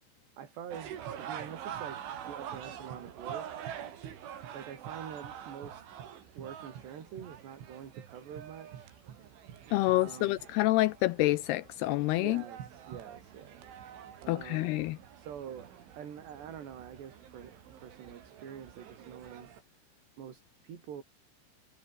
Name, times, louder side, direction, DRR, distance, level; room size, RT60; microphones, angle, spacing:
voice 1, 0.4-2.0 2.3-3.5 4.5-5.8 6.4-9.0 9.9-10.4 12.1-13.6 14.2-14.9 15.2-15.7 16.0-19.5 20.2-21.0, right 8 dB, 65° right, 5.5 m, -46 dB
sound 1, 0.7-19.6, right 9 dB, 90° right, 5.4 m, -46 dB
voice 2, 9.7-12.4 14.3-15.0, left 18 dB, 85° left, 2.3 m, -27 dB
omnidirectional pair, 5.3 m